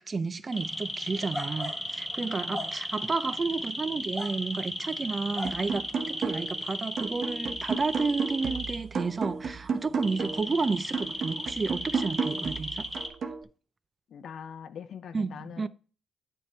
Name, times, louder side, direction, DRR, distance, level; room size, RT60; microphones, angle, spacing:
voice 1, 0.0-12.9 15.1-15.7, right 4 dB, 30° right, 0.4 m, -31 dB
sound 1, 0.5-13.1, left 1 dB, 5° left, 1.4 m, -35 dB
voice 2, 2.2-2.7 10.2-10.4 12.3-12.7 14.1-15.7, left 7 dB, 65° left, 0.6 m, -44 dB
sound 2, 5.4-6.6 7.0-10.5 10.9-13.4, right 5 dB, 55° right, 1.0 m, -33 dB
9.2 x 3.7 x 4.4 m
cardioid pair, 90°, 0 cm